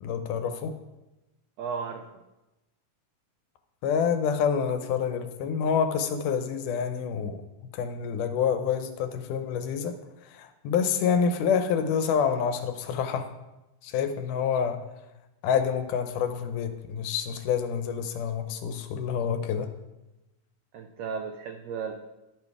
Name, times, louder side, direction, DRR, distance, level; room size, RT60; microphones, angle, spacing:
voice 1, 0.0-0.7 3.8-7.4 7.7-9.9 10.2-13.3 13.8-14.8 15.4-19.7, left 7 dB, 80° left, 7 dB, 2.3 m, -27 dB
voice 2, 1.6-2.1 20.7-21.9, right 6 dB, 85° right, 6 dB, 1.4 m, -34 dB
11.5 x 5.3 x 4.7 m, 0.99 s
omnidirectional pair, 3.6 m